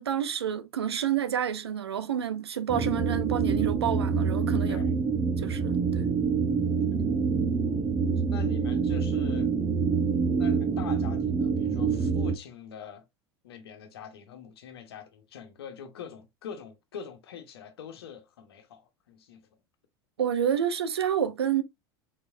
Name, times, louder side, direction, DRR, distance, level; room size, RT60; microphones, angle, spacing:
voice 1, 0.0-5.0 5.4-6.1 20.2-21.6, right 9 dB, 85° right, 0.8 m, -29 dB
sound 1, 2.7-12.3, right 5 dB, 30° right, 1.0 m, -26 dB
voice 2, 8.3-9.5 10.4-13.0 13.4-19.4, left 7 dB, 75° left, 1.2 m, -44 dB
4.7 x 3.9 x 2.6 m
hypercardioid pair, 80°, 13 cm